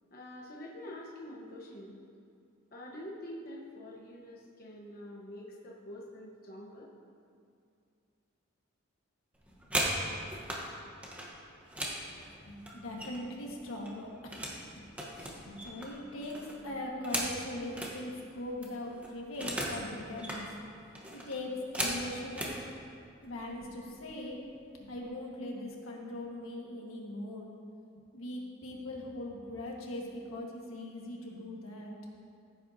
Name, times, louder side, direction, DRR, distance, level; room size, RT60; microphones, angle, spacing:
voice 1, 0.1-2.0 2.7-6.9, left 1 dB, 45° left, -3 dB, 1.0 m, -46 dB
sound 1, 9.3-10.6 11.0-13.4 13.7-14.6 14.9-17.9 18.3-18.4 18.6-19.8 20.1-20.4 20.9-22.6 23.4-23.6 23.9-24.2 24.5-25.0, right 1 dB, 5° right, 1.0 m, -37 dB
voice 2, 12.4-14.4 14.7-14.8 15.1-20.5 20.7-22.5 23.2-24.4 24.8-27.5 28.1-32.0, left 1 dB, 90° left, -2 dB, 1.5 m, -40 dB
14.5 x 7.6 x 2.7 m, 2.4 s
head